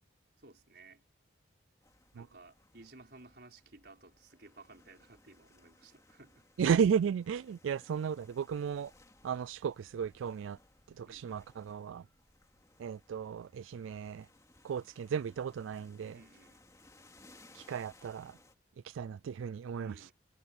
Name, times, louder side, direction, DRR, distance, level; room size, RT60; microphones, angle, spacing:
voice 1, 0.4-1.0 2.1-6.5 11.1-11.4 16.1-16.6 19.8-20.1, right 3 dB, 55° right, 5.1 m, -57 dB
sound 1, 1.8-18.6, left 2 dB, 15° left, 2.8 m, -63 dB
voice 2, 6.6-8.9 9.2-10.6 10.9-12.1 12.8-14.3 14.6-16.2 17.5-18.4 18.8-20.1, right 7 dB, 85° right, 0.3 m, -34 dB
head